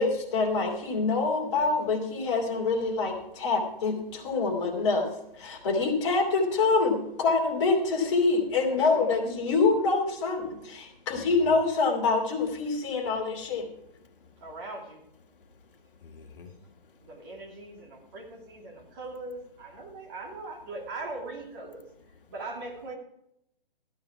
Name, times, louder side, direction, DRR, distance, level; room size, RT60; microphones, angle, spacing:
voice 1, 0.0-5.1 5.4-13.7, left 4 dB, 30° left, 0 dB, 2.9 m, -26 dB
voice 2, 8.6-9.1 14.4-15.0 17.0-21.8 22.3-23.0, right 2 dB, 25° right, -1 dB, 2.5 m, -40 dB
voice 3, 11.0-11.5 13.8-14.4 15.3-17.3 17.8-18.1, left 5 dB, 60° left, 5 dB, 1.9 m, -52 dB
14.0 x 9.6 x 4.7 m, 0.80 s
hypercardioid pair, 170°, 30 cm